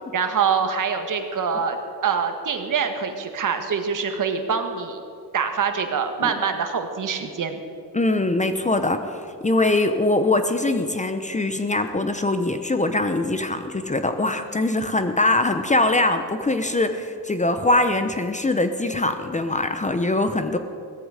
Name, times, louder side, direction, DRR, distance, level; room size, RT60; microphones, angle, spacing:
voice 1, 0.1-5.0 5.3-7.6, right 6 dB, 50° right, 6 dB, 1.6 m, -25 dB
voice 2, 7.9-9.2 9.4-20.6, left 2 dB, 20° left, 8 dB, 0.9 m, -22 dB
16.5 x 14.0 x 5.0 m, 2.5 s
cardioid pair, 85°, 41 cm